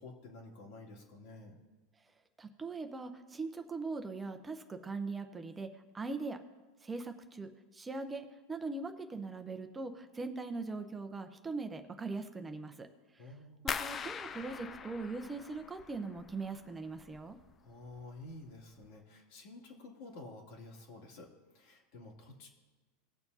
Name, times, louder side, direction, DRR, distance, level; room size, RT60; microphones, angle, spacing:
voice 1, 0.0-1.6 13.2-13.6 17.6-22.5, left 2 dB, 65° left, 0 dB, 2.5 m, -51 dB
voice 2, 2.4-6.4 6.8-12.9 13.6-17.4, right 3 dB, 15° right, 6 dB, 0.7 m, -41 dB
sound 1, 13.7-16.5 16.8-17.5 17.9-18.3 18.7-18.9, left 6 dB, 25° left, 0.5 m, -42 dB
19.0 x 6.9 x 2.8 m, 1.3 s
supercardioid pair, 130°, 0 cm